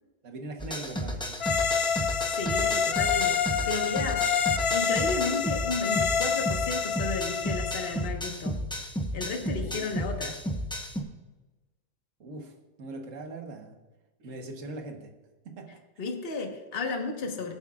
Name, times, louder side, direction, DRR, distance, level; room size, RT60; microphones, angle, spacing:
voice 1, 0.2-1.6 3.5-3.8 4.2-4.3 9.6-10.3 12.2-13.8 14.2-15.1 15.4-15.8 17.2-17.3, right 2 dB, 50° right, 3 dB, 1.6 m, -42 dB
sound 1, 0.6-11.0, equal, 5° left, 0.5 m, -33 dB
sound 2, 1.4-8.1, left 6 dB, 70° left, 0.6 m, -27 dB
voice 2, 2.2-4.2 4.7-8.6 9.1-10.4 16.0-17.5, left 3 dB, 35° left, 2 dB, 1.4 m, -33 dB
23.5 x 7.9 x 2.4 m, 1.2 s
omnidirectional pair, 1.8 m